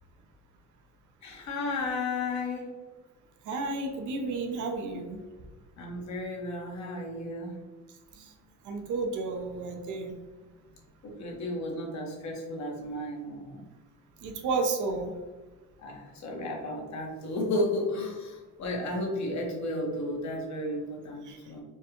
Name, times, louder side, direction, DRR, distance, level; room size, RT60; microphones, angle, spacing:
voice 1, 1.2-2.7 5.8-7.6 11.0-13.6 15.8-21.6, left 1 dB, 65° left, 0 dB, 1.2 m, -33 dB
voice 2, 3.4-5.2 8.2-8.3 8.6-10.1 14.2-15.1 21.2-21.4, right 3 dB, 80° right, 4 dB, 0.7 m, -32 dB
4.5 x 2.3 x 3.0 m, 1.2 s
cardioid pair, 90°, 30 cm